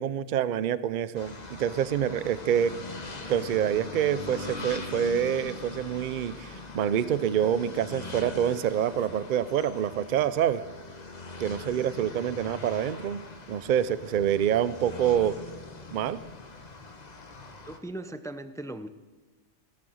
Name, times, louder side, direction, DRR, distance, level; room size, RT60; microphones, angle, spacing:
voice 1, 0.0-2.7 3.3-10.6 11.4-15.4 15.9-16.2, right 9 dB, 55° right, 15 dB, 0.6 m, -27 dB
sound 1, 1.1-17.8, left 3 dB, 35° left, 1.2 m, -41 dB
voice 2, 17.6-18.9, right 1 dB, 5° left, 10 dB, 0.4 m, -38 dB
17.0 x 12.5 x 6.4 m, 1.2 s
omnidirectional pair, 1.2 m